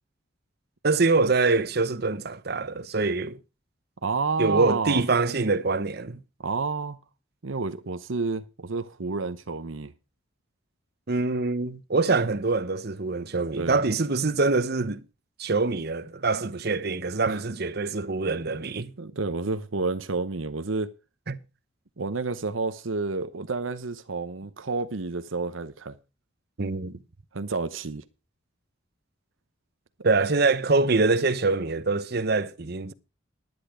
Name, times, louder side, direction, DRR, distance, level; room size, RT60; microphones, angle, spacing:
voice 1, 0.8-3.4 4.4-6.2 11.1-15.0 15.4-18.9 21.3-21.4 26.6-27.0 30.0-32.9, right 3 dB, 55° right, 0.9 m, -24 dB
voice 2, 4.0-5.0 6.4-7.0 7.4-9.9 13.6-13.8 17.3-17.4 19.0-20.9 22.0-26.0 27.3-28.0, right 3 dB, 85° right, 0.9 m, -30 dB
10.5 x 10.5 x 5.0 m
head